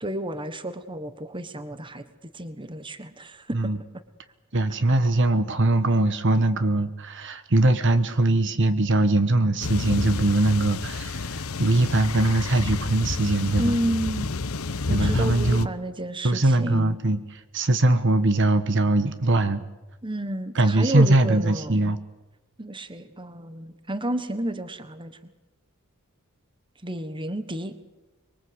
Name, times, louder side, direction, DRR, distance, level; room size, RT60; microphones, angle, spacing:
voice 1, 0.0-2.0 2.3-3.6 13.6-14.3 14.9-17.0 20.0-21.8 22.6-25.2 26.8-27.7, right 1 dB, 20° right, 10 dB, 1.4 m, -31 dB
voice 2, 4.5-13.8 14.9-15.7 16.2-17.2 17.5-19.7 20.5-22.0, right 2 dB, 55° right, 11 dB, 1.3 m, -21 dB
sound 1, 9.6-15.7, left 3 dB, 70° left, 0.9 m, -29 dB
25.0 x 23.0 x 8.1 m, 1.1 s
head